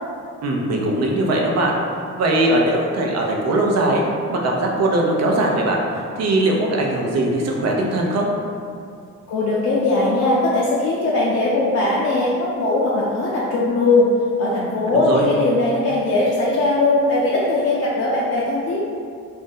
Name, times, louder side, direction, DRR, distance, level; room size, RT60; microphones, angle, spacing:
voice 1, 0.4-1.8 2.2-4.0 4.3-5.8 6.2-8.3 14.9-15.3, right 1 dB, 55° right, -1 dB, 0.6 m, -20 dB
voice 2, 9.3-14.1 14.4-18.8, left 2 dB, 50° left, -6 dB, 0.5 m, -19 dB
2.5 x 2.1 x 3.6 m, 2.4 s
cardioid pair, 90°, 30 cm